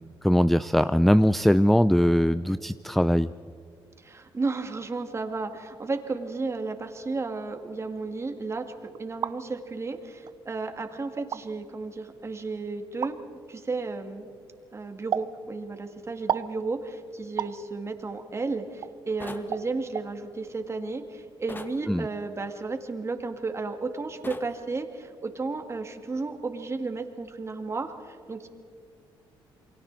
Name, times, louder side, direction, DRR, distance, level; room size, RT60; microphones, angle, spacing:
voice 1, 0.2-3.3 21.8-22.1, equal, ahead, 14 dB, 0.4 m, -21 dB
voice 2, 4.0-13.2 13.5-14.3 14.7-28.5, right 3 dB, 30° right, 6 dB, 2.1 m, -33 dB
sound 1, 8.9-9.4 10.3-10.4 11.2-11.4 13.0-13.2 15.1-15.3 16.3-16.5 17.4-17.6 18.8-18.9 19.5-19.7 19.9-20.1, right 8 dB, 55° right, 0.7 m, -30 dB
sound 2, 19.2-19.5 21.5-21.8 24.2-24.5, left 2 dB, 20° left, 1.4 m, -39 dB
28.0 x 23.0 x 4.1 m, 2.3 s
cardioid pair, 90°, 9 cm